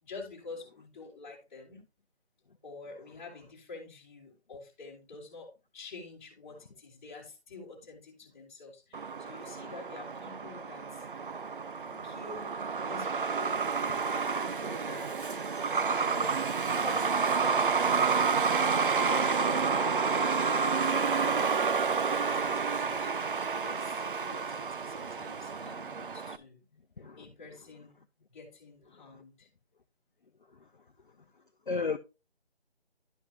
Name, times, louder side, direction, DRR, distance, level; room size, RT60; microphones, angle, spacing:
voice 1, 0.0-1.9 2.6-11.0 12.0-12.5 12.8-13.6 14.1-15.4 15.9-16.5 16.8-21.8 22.2-26.6 27.2-28.0 28.3-29.5, left 3 dB, 10° left, 2.1 m, -48 dB
Truck, 8.9-26.4, right 5 dB, 55° right, 0.6 m, -30 dB
voice 2, 27.0-27.3 31.7-32.0, left 4 dB, 50° left, 0.8 m, -33 dB
11.5 x 5.7 x 2.8 m
figure-of-eight pair, 170°, 32 cm